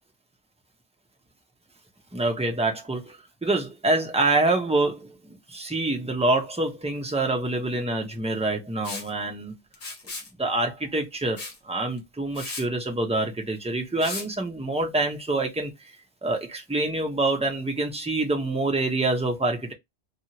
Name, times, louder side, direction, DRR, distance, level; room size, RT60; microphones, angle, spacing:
voice 1, 2.1-9.6 10.4-15.7 16.2-19.7, right 2 dB, 10° right, 0.4 m, -26 dB
Liquid, 8.8-9.1 9.7-10.3 11.4-11.6 12.0-12.1 12.4-12.7 14.0-14.3, left 3 dB, 35° left, 0.8 m, -35 dB
2.9 x 2.3 x 2.8 m
omnidirectional pair, 1.2 m